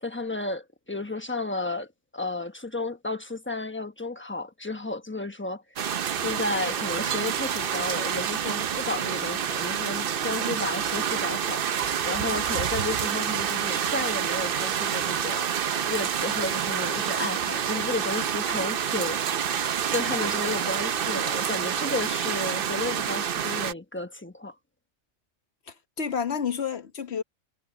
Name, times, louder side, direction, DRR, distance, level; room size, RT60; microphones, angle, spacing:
voice 1, 0.0-5.6 6.2-15.5 15.9-19.4 19.9-24.5, left 2 dB, 10° left, 1.0 m, -33 dB
sound 1, 5.8-23.7, right 8 dB, 50° right, 0.8 m, -28 dB
voice 2, 25.7-27.2, left 7 dB, 60° left, 1.3 m, -30 dB
omnidirectional pair, 1.3 m